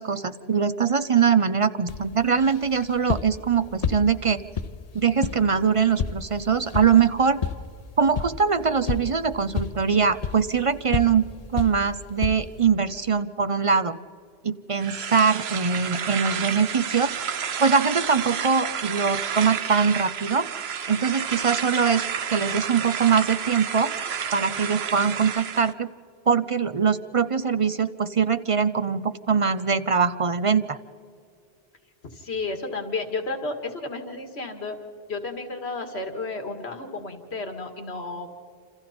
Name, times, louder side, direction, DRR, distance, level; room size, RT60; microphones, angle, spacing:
voice 1, 0.0-4.4 4.9-7.4 8.0-14.0 14.4-17.1 17.6-20.5 20.9-22.0 22.3-23.9 24.3-25.9 26.3-30.8, right 6 dB, 40° right, 12 dB, 0.6 m, -22 dB
sound 1, 1.9-12.7, left 5 dB, 40° left, 0.8 m, -33 dB
sound 2, 14.8-25.7, right 7 dB, 75° right, 1.1 m, -30 dB
voice 2, 32.0-34.8 35.1-38.4, left 3 dB, 80° left, 6 dB, 2.2 m, -32 dB
27.5 x 27.5 x 4.3 m, 2.4 s
omnidirectional pair, 1.1 m